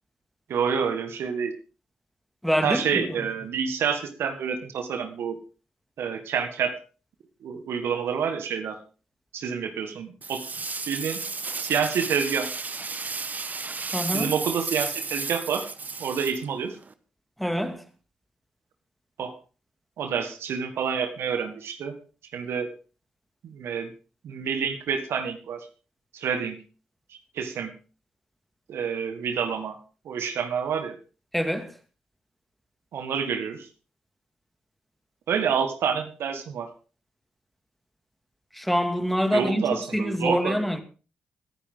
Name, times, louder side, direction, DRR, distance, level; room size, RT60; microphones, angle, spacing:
voice 1, 0.5-1.5 2.6-5.4 6.0-6.7 7.4-8.8 9.3-10.4 10.9-11.2 11.6-12.5 14.1-15.6 16.0-16.8 19.2-19.3 20.0-21.9 22.3-22.7 23.4-23.9 24.2-25.7 26.1-26.6 27.1-27.7 28.7-29.8 30.1-31.0 32.9-33.7 35.3-36.7 39.3-40.6, right 7 dB, 70° right, 1.7 m, -28 dB
voice 2, 2.4-3.0 13.9-14.3 17.4-17.8 31.3-31.7 38.5-40.8, equal, ahead, 2.4 m, -25 dB
sound 1, 10.2-16.9, right 4 dB, 40° right, 1.2 m, -33 dB
19.5 x 10.0 x 3.9 m
hypercardioid pair, 40°, 4 cm